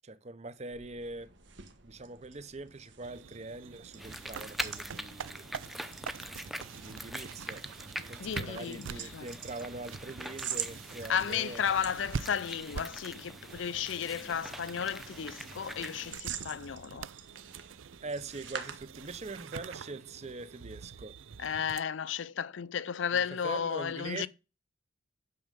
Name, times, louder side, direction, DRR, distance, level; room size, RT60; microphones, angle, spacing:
voice 1, 0.0-1.3 1.8-6.1 6.8-7.6 8.1-11.7 18.0-21.2 23.1-24.3, right 2 dB, 35° right, 0.8 m, -43 dB
sound 1, 0.6-19.5, right 8 dB, 65° right, 1.5 m, -47 dB
sound 2, 3.0-21.8, right 6 dB, 85° right, 0.5 m, -45 dB
sound 3, 4.0-16.1, equal, ahead, 0.7 m, -44 dB
voice 2, 8.2-9.3 11.1-17.1 21.4-24.3, left 7 dB, 70° left, 0.5 m, -33 dB
9.4 x 6.6 x 5.2 m
head